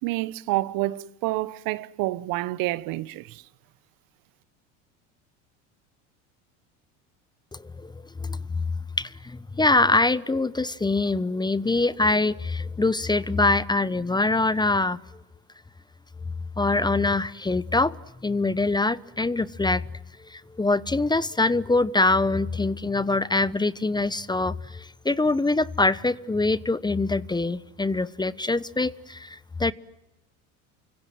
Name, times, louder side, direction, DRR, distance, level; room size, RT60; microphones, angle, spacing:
voice 1, 0.0-3.4, right 18 dB, 60° right, 1.3 m, -28 dB
voice 2, 7.5-7.9 8.2-8.6 9.0-15.0 16.6-17.9 18.2-19.8 20.3-29.7, left 2 dB, 10° left, 0.9 m, -24 dB
29.0 x 25.5 x 7.8 m
hypercardioid pair, 85°, 38 cm